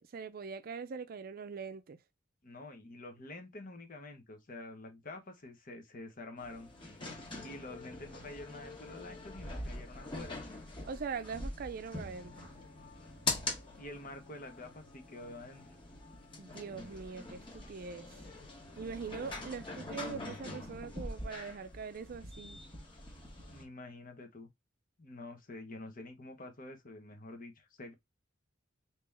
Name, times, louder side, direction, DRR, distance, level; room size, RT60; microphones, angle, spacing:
voice 1, 0.0-2.0 10.9-12.5 16.4-18.1 18.8-22.6, right 5 dB, 50° right, 0.4 m, -42 dB
voice 2, 2.4-6.7 7.4-10.4 13.8-15.6 23.5-24.5 25.0-27.9, left 2 dB, 45° left, 1.0 m, -47 dB
sound 1, 6.4-23.6, left 2 dB, 25° left, 1.2 m, -43 dB
3.4 x 2.9 x 3.5 m
head